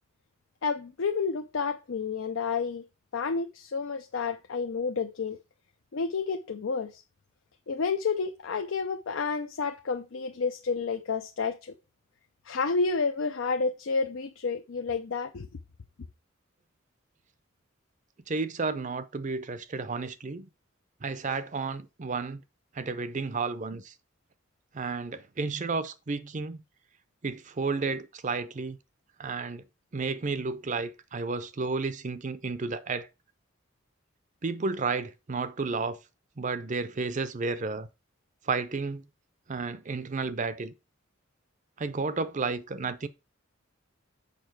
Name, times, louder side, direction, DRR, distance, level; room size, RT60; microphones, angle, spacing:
voice 1, 0.6-2.8 3.1-5.4 5.9-7.0 7.7-11.7 12.5-15.5, left 4 dB, 70° left, 0.5 m, -30 dB
voice 2, 18.3-20.5 21.0-22.4 22.7-23.9 24.7-26.6 27.2-28.8 29.2-29.6 29.9-33.1 34.4-36.0 36.4-37.9 38.4-39.0 39.5-40.7 41.8-43.1, right 4 dB, 40° right, 0.6 m, -32 dB
6.7 x 5.5 x 4.6 m
head